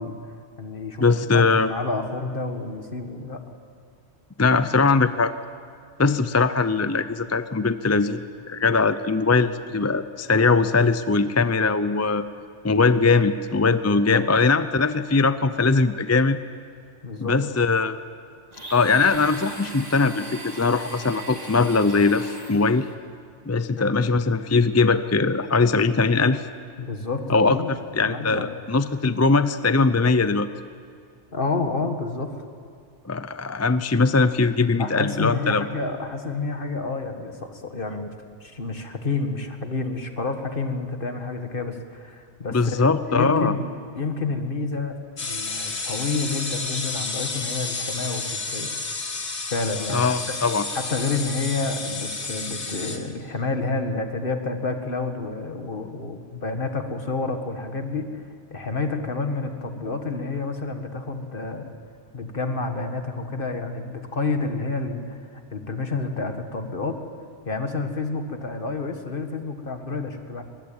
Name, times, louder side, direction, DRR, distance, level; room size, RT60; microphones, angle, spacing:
voice 1, 0.0-3.4 13.9-14.2 17.0-17.3 23.8-23.9 26.8-27.7 28.1-28.6 31.3-32.4 34.8-38.1 38.4-48.3 48.5-48.7 49.5-50.4 50.7-58.2 58.5-61.7 62.1-67.0 67.5-70.4, left 3 dB, 50° left, 6 dB, 2.0 m, -29 dB
voice 2, 1.0-1.7 4.4-5.3 6.0-12.2 12.6-16.4 17.2-18.0 18.7-22.9 23.5-26.4 27.3-27.6 28.0-30.5 33.1-35.6 42.5-43.5 49.9-50.6, left 4 dB, 20° left, 12 dB, 0.4 m, -21 dB
Domestic sounds home sounds, 18.5-22.9, right 2 dB, 35° right, 2.8 m, -39 dB
sound 1, 45.2-53.0, left 3 dB, 70° left, 2.1 m, -31 dB
23.0 x 21.0 x 8.7 m, 2.3 s
omnidirectional pair, 1.2 m